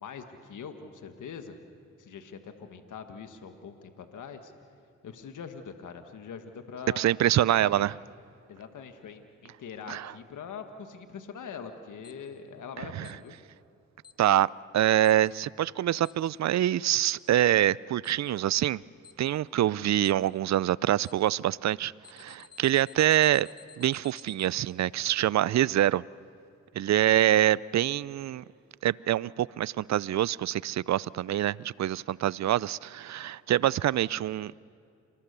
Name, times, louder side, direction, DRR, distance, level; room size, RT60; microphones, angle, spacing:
voice 1, 0.0-1.6 2.0-4.5 5.0-7.0 7.6-7.8 8.5-13.4, left 6 dB, 75° left, 1.6 m, -43 dB
voice 2, 7.0-7.9 9.9-10.1 12.8-13.1 14.2-18.8 19.2-23.5 23.8-26.0 26.7-28.4 28.8-34.5, right 12 dB, 60° right, 0.5 m, -25 dB
Alarm, 12.0-12.1 13.0-13.1 14.0-14.1 15.0-15.1 16.0-16.1 17.0-17.1 18.0-18.1 19.0-19.1 20.0-20.1 21.0-21.1 22.0-24.5, left 7 dB, 30° left, 2.2 m, -51 dB
28.5 x 19.5 x 6.8 m
supercardioid pair, 50°, 31 cm